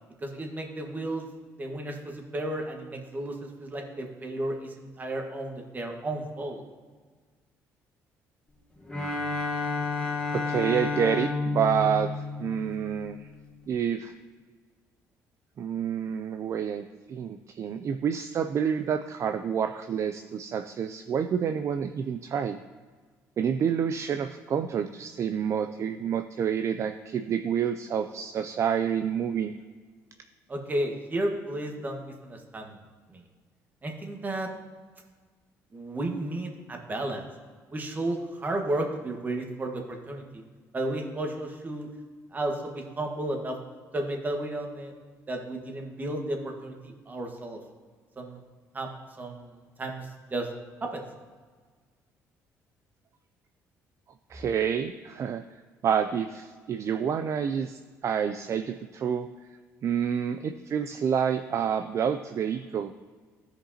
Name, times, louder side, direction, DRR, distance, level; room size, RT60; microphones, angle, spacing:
voice 1, 0.2-1.2 1.6-6.6 30.5-32.8 33.1-33.2 33.8-34.5 35.7-37.2 37.7-40.4 40.7-41.9 42.3-43.5 43.9-44.9 45.3-47.6 48.2-48.4 48.7-48.9 49.2-49.5 49.8-50.5 50.8-51.0, right 1 dB, 30° right, 2 dB, 1.5 m, -33 dB
Bowed string instrument, 8.9-13.2, left 3 dB, 15° left, 1.2 m, -31 dB
voice 2, 10.3-12.1 12.4-13.3 13.7-14.1 15.6-22.6 23.4-29.5 54.3-55.4 55.8-59.3 59.8-62.9, right 8 dB, 50° right, 8 dB, 0.4 m, -28 dB
14.5 x 5.1 x 2.8 m, 1.5 s
cardioid pair, 85°, 6 cm